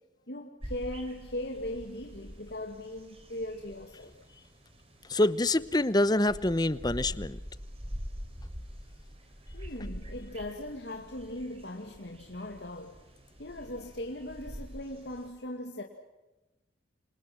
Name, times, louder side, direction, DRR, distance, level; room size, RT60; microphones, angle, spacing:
voice 1, 0.3-4.1 9.5-13.0 13.4-15.8, left 1 dB, 65° left, 2 dB, 2.3 m, -39 dB
sound 1, 0.6-15.3, equal, 30° right, 5.1 m, -45 dB
voice 2, 5.1-7.4, left 1 dB, 20° left, 16 dB, 0.9 m, -26 dB
28.5 x 27.5 x 6.1 m, 1.1 s
head